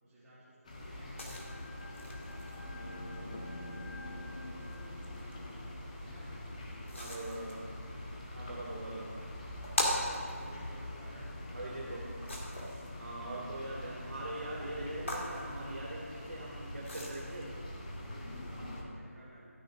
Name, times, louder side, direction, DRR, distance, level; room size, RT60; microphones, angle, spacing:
voice 1, 0.0-1.4 1.7-3.5 6.0-6.3 10.1-11.3 11.7-12.2 17.7-19.5, right 1 dB, 10° right, -10 dB, 2.3 m, -56 dB
sound 1, 0.6-18.8, left 1 dB, 30° left, 1.4 m, -48 dB
sound 2, 0.7-18.8, left 1 dB, 55° left, 2.2 m, -41 dB
sound 3, 1.3-5.8, left 1 dB, 80° left, 2.1 m, -53 dB
voice 2, 6.9-7.6 8.3-9.1 11.5-12.0 12.9-17.5, right 1 dB, 60° right, -5 dB, 3.0 m, -42 dB
13.0 x 9.5 x 3.4 m, 2.3 s
figure-of-eight pair, 165°, 8 cm